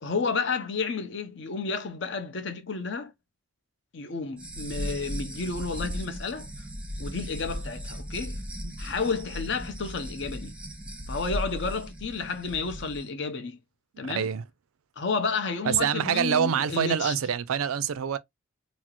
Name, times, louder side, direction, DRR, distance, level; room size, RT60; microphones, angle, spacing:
voice 1, 0.0-3.1 3.9-6.5 7.0-8.4 8.8-10.5 11.1-13.6 14.0-14.3 15.0-17.1, left 4 dB, 55° left, 0.7 m, -31 dB
sound 1, 4.4-13.0, equal, 5° right, 0.5 m, -37 dB
voice 2, 14.1-14.4 15.6-18.2, right 8 dB, 90° right, 0.4 m, -26 dB
4.1 x 2.0 x 2.8 m
head